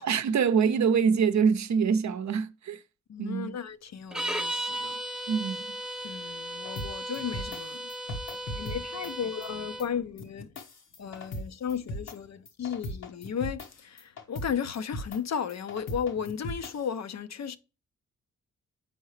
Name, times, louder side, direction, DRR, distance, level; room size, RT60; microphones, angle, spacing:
voice 1, 0.0-2.8 3.2-3.6 5.3-5.8, right 6 dB, 60° right, 0.6 m, -25 dB
voice 2, 3.1-5.0 6.0-7.9 8.6-10.5 11.0-17.6, left 7 dB, 55° left, 0.6 m, -35 dB
sound 1, 4.1-9.9, right 1 dB, ahead, 0.8 m, -36 dB
sound 2, 6.6-7.6 7.9-8.8 9.0-9.1 9.4-9.5 9.8-9.9 10.2-11.4 11.7-12.1 12.5-13.7 14.0-14.5 14.7-15.2 15.5-16.7, left 1 dB, 75° left, 1.3 m, -37 dB
7.8 x 4.6 x 3.2 m
supercardioid pair, 50°, 32 cm